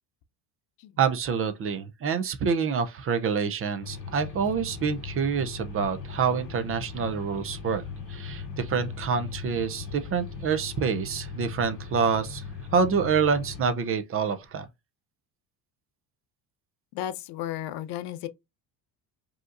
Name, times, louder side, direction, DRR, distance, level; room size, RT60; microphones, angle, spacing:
voice 1, 1.0-7.8 8.1-12.4 12.7-14.7, right 6 dB, 30° right, 0.5 m, -27 dB
sound 1, 3.8-13.7, left 5 dB, 45° left, 2.2 m, -39 dB
voice 2, 16.9-18.3, left 12 dB, 65° left, 0.7 m, -34 dB
5.1 x 2.8 x 2.5 m
cardioid pair, 145°, 43 cm